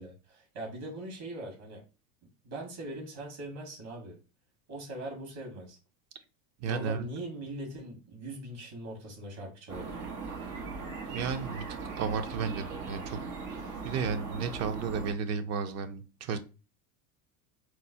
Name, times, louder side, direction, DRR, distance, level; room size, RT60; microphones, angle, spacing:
voice 1, 0.0-1.8 2.4-4.2 4.7-5.8 6.7-10.1, right 1 dB, 60° right, 0 dB, 1.7 m, -41 dB
voice 2, 6.6-7.0 11.1-13.2 13.8-16.4, right 6 dB, 35° right, 10 dB, 0.5 m, -33 dB
sound 1, 9.7-15.1, right 4 dB, 80° right, 1.0 m, -39 dB
4.4 x 2.0 x 2.8 m, 0.32 s
supercardioid pair, 100°, 46 cm